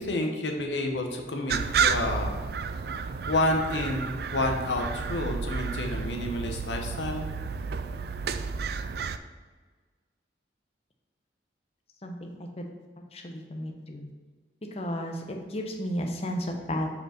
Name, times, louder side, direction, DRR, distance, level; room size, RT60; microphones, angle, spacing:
voice 1, 0.0-2.3 3.3-7.3, left 1 dB, 80° left, 3 dB, 1.1 m, -29 dB
sound 1, 1.5-9.2, right 5 dB, 55° right, 0.3 m, -31 dB
voice 2, 13.1-14.1 14.7-16.9, equal, 35° left, 3 dB, 0.8 m, -33 dB
5.5 x 4.6 x 5.9 m, 1.4 s
head